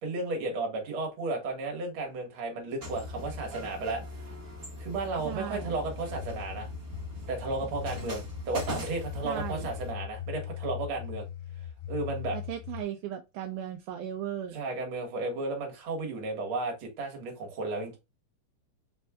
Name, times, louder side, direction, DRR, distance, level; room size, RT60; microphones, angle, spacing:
voice 1, 0.0-4.0 4.8-6.7 7.3-11.3 11.9-12.4 14.5-18.0, right 3 dB, 50° right, 1.9 m, -33 dB
sound 1, 2.8-12.8, left 10 dB, 80° left, 2.0 m, -41 dB
sound 2, 2.8-9.9, equal, 65° right, 0.5 m, -41 dB
voice 2, 5.2-5.8 9.2-9.7 12.3-14.6, right 10 dB, 80° right, 1.9 m, -37 dB
4.3 x 4.3 x 2.3 m
omnidirectional pair, 3.8 m